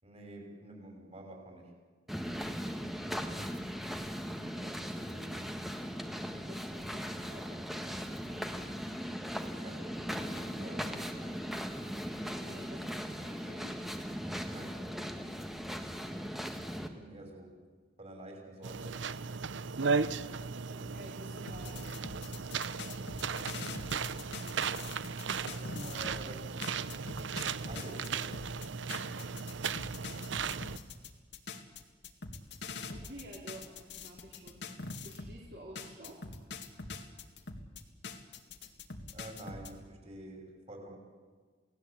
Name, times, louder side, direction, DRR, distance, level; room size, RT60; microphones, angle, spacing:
voice 1, 0.0-1.7 9.6-9.9 10.3-11.4 14.5-14.8 15.1-15.6 16.8-17.6 18.0-19.0 25.6-26.7 27.6-28.3 39.1-41.0, right 1 dB, 35° right, 2 dB, 5.8 m, -48 dB
sound 1, 2.1-16.9, equal, ahead, 1.6 m, -39 dB
voice 2, 4.6-5.9 6.3-8.5 12.3-13.8 20.5-21.9 32.9-34.7 35.0-36.3, right 1 dB, 55° right, -3 dB, 4.0 m, -51 dB
sound 2, 18.6-30.8, right 5 dB, 75° right, 0.8 m, -36 dB
sound 3, 21.5-26.2 26.6-35.4 35.8-39.7, left 3 dB, 65° left, 2.2 m, -44 dB
29.0 x 18.5 x 8.6 m, 1.5 s
head